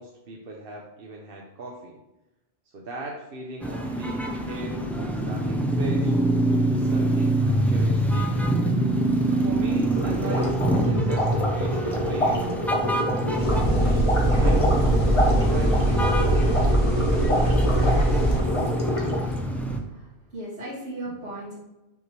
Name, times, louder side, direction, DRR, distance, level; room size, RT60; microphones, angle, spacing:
voice 1, 0.0-2.0 2.7-6.2 6.7-8.5 9.3-12.4 13.2-14.9 15.4-15.8, right 2 dB, 65° right, -1 dB, 1.0 m, -39 dB
sound 1, 3.6-19.8, right 1 dB, ahead, 0.6 m, -25 dB
sound 2, 9.9-19.4, left 1 dB, 30° left, 1.3 m, -27 dB
sound 3, 13.4-18.4, right 1 dB, 65° left, 2.5 m, -22 dB
voice 2, 17.9-18.9 19.9-21.5, right 1 dB, 80° right, -10 dB, 2.0 m, -38 dB
5.9 x 5.8 x 3.1 m, 0.98 s
omnidirectional pair, 1.1 m